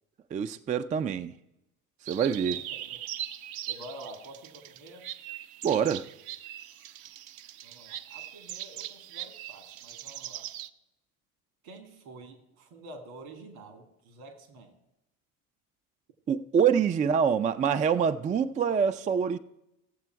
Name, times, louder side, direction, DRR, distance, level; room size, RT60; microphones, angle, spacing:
voice 1, 0.3-1.3 2.0-2.6 5.6-6.0 16.3-19.4, right 7 dB, 20° right, 0.3 m, -25 dB
sound 1, 2.0-10.7, right 13 dB, 55° right, 0.7 m, -40 dB
voice 2, 2.5-3.0 3.7-5.1 7.6-10.5 11.6-14.8, right 1 dB, 70° right, 2.2 m, -48 dB
16.0 x 7.3 x 4.5 m
figure-of-eight pair, 60°, 44 cm